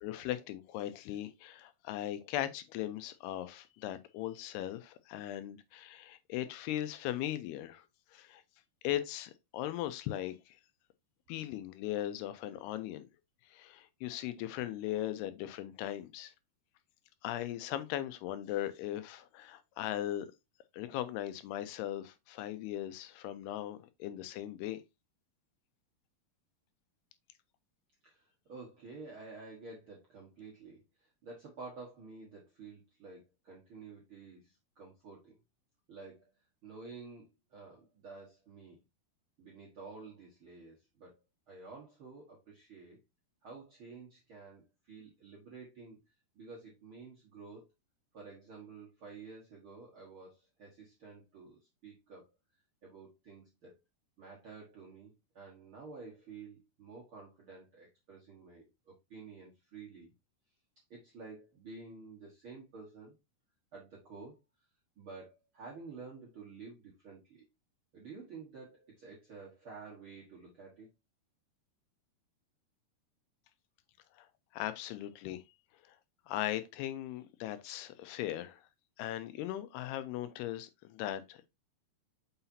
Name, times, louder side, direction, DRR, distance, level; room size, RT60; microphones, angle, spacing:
voice 1, 0.0-7.8 8.1-8.4 8.8-10.6 11.3-13.1 13.5-16.3 17.2-20.3 20.7-24.8 74.2-74.3 74.5-75.4 76.3-78.6 79.0-81.5, left 13 dB, 85° left, 2.7 m, -38 dB
voice 2, 28.0-35.4 35.9-36.3 36.6-38.8 39.4-41.2 41.5-43.0 43.4-46.0 46.3-47.7 48.1-52.3 52.8-53.8 54.2-60.1 60.9-63.1 63.7-64.4 65.0-67.4 67.9-70.9, right 4 dB, 60° right, 1.3 m, -51 dB
6.7 x 5.7 x 2.7 m
omnidirectional pair, 4.6 m